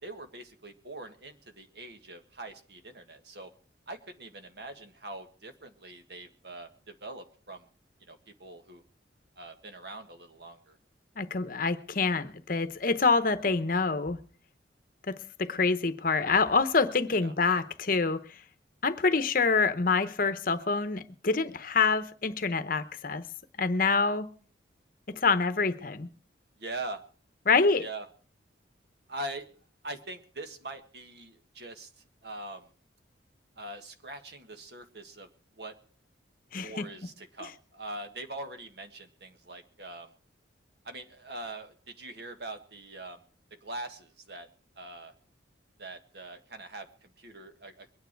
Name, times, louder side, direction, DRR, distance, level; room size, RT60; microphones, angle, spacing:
voice 1, 0.0-3.5 3.9-7.7 8.0-8.8 9.4-10.8 17.2-17.3 26.6-27.0 27.8-28.1 29.1-29.5 29.8-31.9 32.2-32.7 33.6-35.3 35.6-35.7 36.6-40.1 40.8-43.2 43.6-44.5 44.7-45.1 45.8-47.9, right 2 dB, 60° right, 1.6 m, -42 dB
voice 2, 11.2-14.2 15.1-18.2 18.8-23.2 23.6-24.3 25.2-26.1 27.5-27.8 36.5-36.7, left 4 dB, 50° left, 0.9 m, -26 dB
22.5 x 9.4 x 4.6 m
head